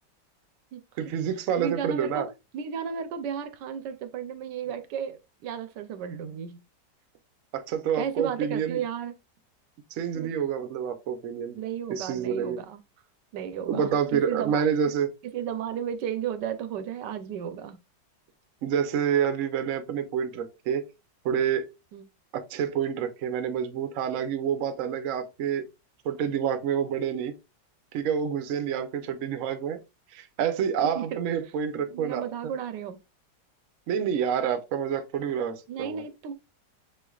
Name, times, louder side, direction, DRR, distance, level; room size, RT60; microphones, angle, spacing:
voice 1, 1.0-2.3 7.5-8.8 9.9-11.6 11.9-12.6 13.7-15.1 18.6-20.8 21.2-21.7 22.3-25.7 26.0-27.4 27.9-29.8 30.1-32.3 33.9-36.0, right 8 dB, 60° right, 0.9 m, -28 dB
voice 2, 1.6-2.3 2.5-6.6 7.9-9.1 10.2-10.3 11.5-12.8 13.3-14.9 15.3-17.8 21.9-22.0 31.0-31.2 31.9-33.0 35.7-36.3, right 8 dB, 80° right, 1.2 m, -34 dB
6.8 x 3.2 x 2.3 m
omnidirectional pair, 1.9 m